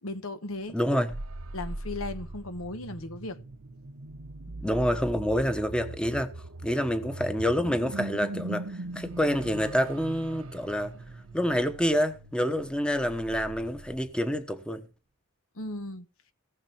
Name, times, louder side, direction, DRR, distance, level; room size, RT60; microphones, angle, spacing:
voice 1, 0.0-0.8 1.5-3.4 15.5-16.1, left 2 dB, 75° left, 1.2 m, -36 dB
voice 2, 0.7-1.1 4.6-6.3 6.6-10.9 11.3-14.9, equal, 5° left, 1.0 m, -27 dB
sound 1, 0.9-14.4, right 2 dB, 80° right, 1.0 m, -40 dB
18.0 x 6.7 x 4.4 m
head